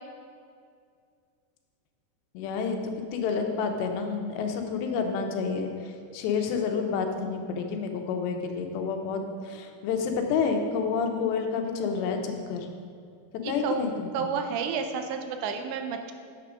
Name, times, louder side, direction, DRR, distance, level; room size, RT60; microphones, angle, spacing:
voice 1, 2.3-12.7 13.5-14.3, left 5 dB, 80° left, 4 dB, 3.0 m, -29 dB
voice 2, 13.4-13.9 14.1-16.1, right 6 dB, 85° right, 6 dB, 2.9 m, -31 dB
9.3 x 7.4 x 5.0 m, 2.3 s
omnidirectional pair, 5.0 m